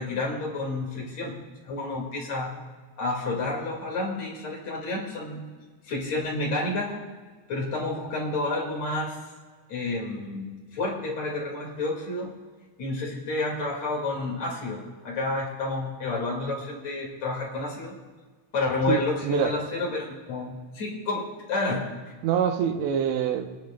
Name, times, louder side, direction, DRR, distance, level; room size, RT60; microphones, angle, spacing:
voice 1, 0.0-1.4 1.6-2.5 3.0-5.4 5.8-7.0 7.5-9.2 9.7-12.3 12.8-18.0 18.5-21.9, left 2 dB, 50° left, -2 dB, 2.7 m, -30 dB
voice 2, 18.9-19.5 22.2-23.5, right 8 dB, 85° right, 5 dB, 3.1 m, -25 dB
25.5 x 11.0 x 2.2 m, 1.5 s
omnidirectional pair, 4.9 m